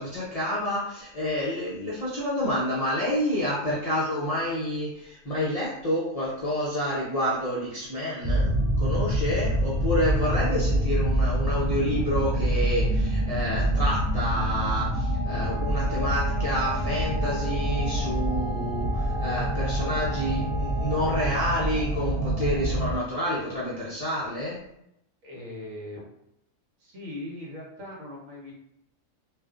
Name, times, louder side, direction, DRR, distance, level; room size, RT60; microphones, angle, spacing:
voice 1, 0.0-24.6, equal, 65° left, -8 dB, 0.3 m, -29 dB
sound 1, 8.2-23.0, right 1 dB, 45° left, 0.8 m, -26 dB
Wind instrument woodwind instrument, 15.2-21.9, right 2 dB, 35° right, 1.1 m, -39 dB
voice 2, 25.2-26.0 26.8-28.5, left 1 dB, 75° right, -2 dB, 1.2 m, -40 dB
2.4 x 2.4 x 2.3 m, 0.79 s
omnidirectional pair, 1.4 m